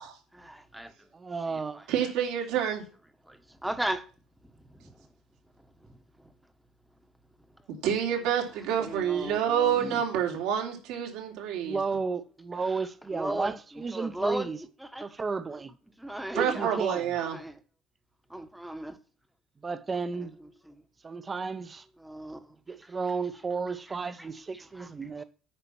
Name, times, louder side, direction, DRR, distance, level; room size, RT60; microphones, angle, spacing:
voice 1, 0.3-0.9 1.8-1.9 3.2-4.1 4.4-5.1 5.5-6.3 7.4-7.6 8.5-9.8 12.6-14.5 14.8-15.1 15.5-15.6 16.0-17.6 18.3-19.0 19.9-20.8 22.0-22.6 22.8-23.0 23.3-24.3 24.5-25.2, right 1 dB, 5° right, 1.1 m, -38 dB
voice 2, 1.3-1.9 9.8-10.0 11.6-14.6 15.0-15.7 16.3-17.1 19.6-20.3 21.0-21.8 22.7-25.2, right 4 dB, 20° right, 0.8 m, -33 dB
voice 3, 1.9-2.8 7.7-11.8 16.3-17.4, right 9 dB, 80° right, 3.2 m, -28 dB
8.8 x 5.8 x 7.0 m
cardioid pair, 150°, 0 cm